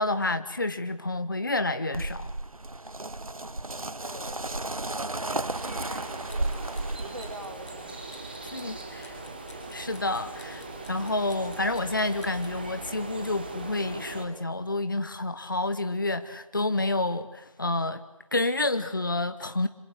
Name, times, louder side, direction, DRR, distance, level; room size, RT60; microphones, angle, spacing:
voice 1, 0.0-2.3 8.5-9.2 9.7-18.0 18.3-19.7, left 2 dB, 35° left, 11 dB, 1.0 m, -29 dB
sound 1, 1.9-7.3, right 2 dB, 85° right, 0.9 m, -33 dB
voice 2, 4.0-4.5 4.8-6.5 7.0-8.0, right 1 dB, 50° right, 7 dB, 3.6 m, -43 dB
sound 2, 5.5-14.3, right 3 dB, 15° right, 1.9 m, -40 dB
sound 3, 6.1-12.6, left 2 dB, 5° left, 4.6 m, -54 dB
28.0 x 26.5 x 7.8 m, 0.95 s
figure-of-eight pair, 165°, 18 cm